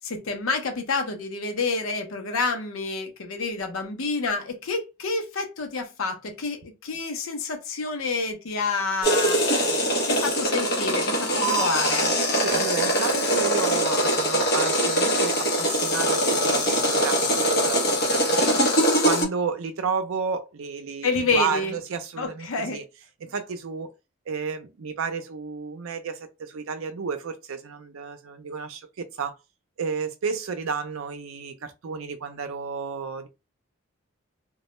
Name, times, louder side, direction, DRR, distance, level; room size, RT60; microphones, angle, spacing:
voice 1, 0.0-9.4 10.1-12.1 21.0-21.7 22.2-22.8, left 4 dB, 80° left, 0.6 m, -28 dB
sound 1, 9.0-19.3, equal, 50° left, 0.8 m, -22 dB
voice 2, 12.4-18.5 19.0-22.8 23.2-23.9 24.3-29.3 29.8-33.3, right 5 dB, 80° right, 0.5 m, -31 dB
2.2 x 2.1 x 3.0 m
head